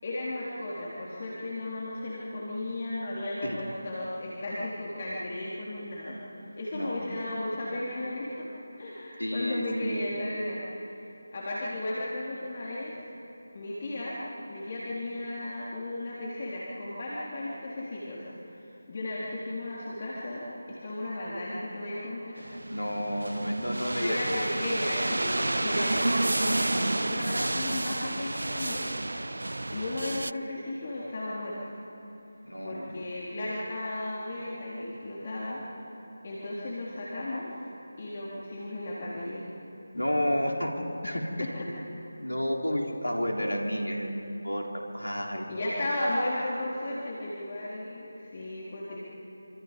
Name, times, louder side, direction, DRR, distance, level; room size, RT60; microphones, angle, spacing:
voice 1, 0.0-6.2 6.6-8.5 8.8-10.6 11.3-12.9 13.5-14.2 14.5-22.5 23.9-29.4 29.7-31.6 32.6-35.6 36.2-37.6 38.0-39.5 41.4-41.5 45.5-49.0, left 1 dB, 35° left, -7 dB, 3.9 m, -35 dB
voice 2, 6.7-7.1 9.2-10.1 22.7-24.2 32.4-33.0 39.9-40.7 41.0-41.5 42.2-44.7 44.9-45.7, equal, 80° left, 0 dB, 3.8 m, -31 dB
sound 1, 22.5-30.3, right 2 dB, 65° right, 0.4 m, -30 dB
27.0 x 26.5 x 5.3 m, 3.0 s
figure-of-eight pair, 160°, 0 cm